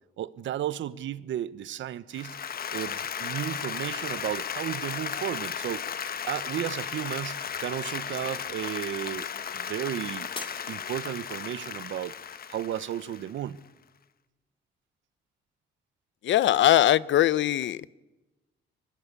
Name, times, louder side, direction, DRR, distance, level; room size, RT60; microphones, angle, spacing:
voice 1, 0.2-2.4 2.7-5.8 6.3-10.3 10.7-12.2 12.5-13.6, right 11 dB, 70° right, 1.0 m, -34 dB
Applause, 2.1-13.5, left 8 dB, 50° left, 1.1 m, -35 dB
Shatter, 10.3-11.6 12.2-12.6 13.2-13.3, left 3 dB, 25° left, 4.3 m, -43 dB
voice 2, 16.2-17.9, left 13 dB, 70° left, 0.7 m, -21 dB
24.0 x 22.0 x 8.3 m
cardioid pair, 90°, 20 cm